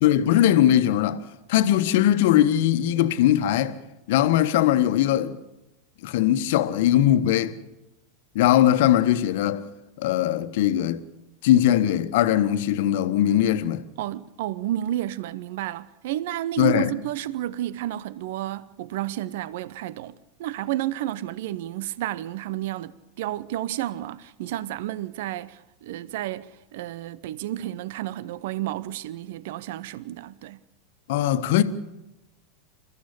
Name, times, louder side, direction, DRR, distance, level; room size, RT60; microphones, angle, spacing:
voice 1, 0.0-1.2 1.5-3.8 4.1-5.4 6.0-7.6 8.3-9.6 10.0-11.0 11.4-13.8 16.6-16.9 31.1-31.6, left 12 dB, 60° left, 1.4 m, -20 dB
voice 2, 14.0-20.1 20.4-30.6, right 13 dB, 60° right, 0.8 m, -31 dB
28.5 x 14.5 x 8.5 m
figure-of-eight pair, 85°, 0 cm